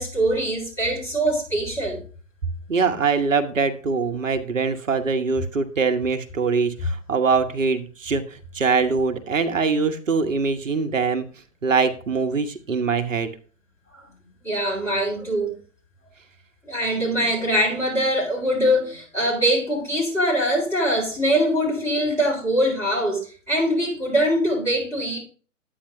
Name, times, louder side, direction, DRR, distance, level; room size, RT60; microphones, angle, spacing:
voice 1, 0.0-2.0 14.4-15.6 16.6-25.2, equal, 5° left, 4.0 m, -23 dB
voice 2, 2.7-11.3 11.6-13.3, right 4 dB, 70° right, 1.1 m, -23 dB
10.0 x 8.8 x 2.7 m
figure-of-eight pair, 125°, 39 cm